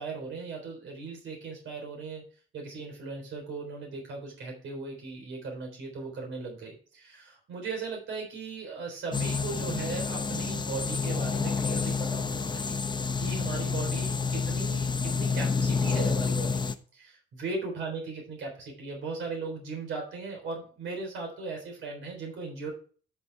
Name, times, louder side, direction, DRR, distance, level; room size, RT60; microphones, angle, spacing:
voice 1, 0.0-2.3 2.5-12.8 13.2-16.6 16.9-22.7, right 4 dB, 75° right, 1 dB, 3.7 m, -38 dB
sound 1, 9.1-16.7, left 5 dB, 20° left, 0.7 m, -29 dB
11.0 x 6.3 x 3.4 m, 0.41 s
cardioid pair, 90°, 20 cm